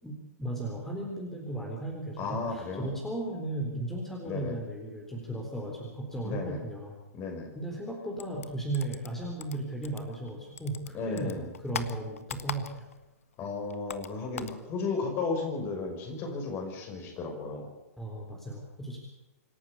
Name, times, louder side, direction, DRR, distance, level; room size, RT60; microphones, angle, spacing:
voice 1, 0.0-7.0 7.5-12.9 18.0-19.0, right 2 dB, 5° left, -1 dB, 3.9 m, -36 dB
voice 2, 2.2-2.9 4.2-4.6 6.2-6.6 7.1-7.5 10.9-11.5 13.4-17.7, left 4 dB, 25° left, 3 dB, 5.8 m, -34 dB
sound 1, 8.2-10.3 10.6-13.1 13.3-14.6, left 7 dB, 60° left, 1.4 m, -40 dB
26.5 x 12.0 x 8.5 m, 1.0 s
figure-of-eight pair, 110°, 8 cm